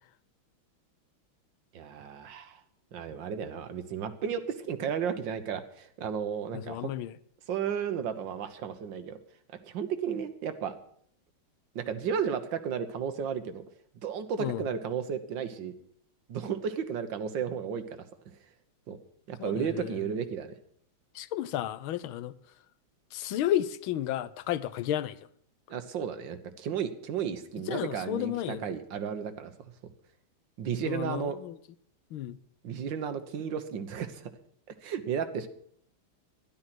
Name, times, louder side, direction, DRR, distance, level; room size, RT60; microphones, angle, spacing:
voice 1, 1.7-2.6 2.9-6.9 7.5-9.2 9.6-10.8 11.8-13.6 14.0-15.7 16.3-18.1 18.9-19.0 19.3-20.5 25.7-29.5 30.6-31.4 32.6-34.3 34.8-35.5, right 7 dB, 65° right, 1.8 m, -33 dB
voice 2, 6.5-7.1 14.4-14.6 19.4-20.0 21.1-22.3 23.1-25.2 27.7-28.7 30.8-31.6 32.1-32.4, left 12 dB, 90° left, 1.6 m, -32 dB
13.0 x 11.5 x 6.1 m
omnidirectional pair, 2.2 m